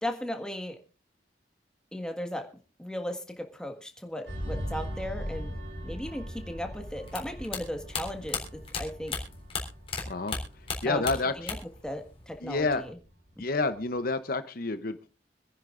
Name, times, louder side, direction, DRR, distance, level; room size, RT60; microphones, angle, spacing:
voice 1, 0.0-0.8 1.9-2.5 2.8-5.5 5.8-9.2 10.8-11.1 11.4-11.6 11.8-13.0, left 1 dB, 5° left, 4 dB, 1.6 m, -36 dB
sound 1, 4.3-13.3 13.6-13.9, equal, 70° right, 4.2 m, -40 dB
sound 2, 7.1-10.0 10.3-11.8 12.1-12.8, left 5 dB, 30° left, 3.6 m, -34 dB
voice 2, 10.1-10.4 10.8-11.5 12.4-12.8 13.4-15.1, left 3 dB, 55° left, 10 dB, 0.8 m, -29 dB
26.0 x 10.5 x 2.5 m, 0.35 s
head